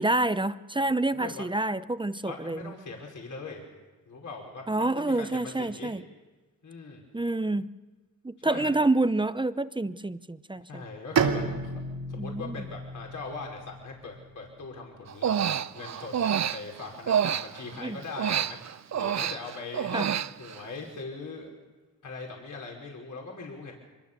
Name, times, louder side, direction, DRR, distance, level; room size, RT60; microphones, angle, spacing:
voice 1, 0.0-2.6 4.7-6.0 7.1-7.7 8.2-10.8 12.2-12.6 17.8-18.0 19.9-20.1, right 2 dB, 15° right, 13 dB, 0.8 m, -28 dB
voice 2, 1.1-1.5 2.3-3.6 4.1-5.9 6.6-7.0 8.4-8.8 10.7-11.7 12.0-21.5 22.0-23.7, left 3 dB, 60° left, 0 dB, 5.3 m, -41 dB
Bowed string instrument, 11.2-14.8, right 5 dB, 85° right, 2.8 m, -31 dB
Human voice, 15.1-17.8 18.2-20.7, right 8 dB, 50° right, 0.7 m, -28 dB
25.0 x 21.5 x 7.0 m, 1.3 s
cardioid pair, 75°, 34 cm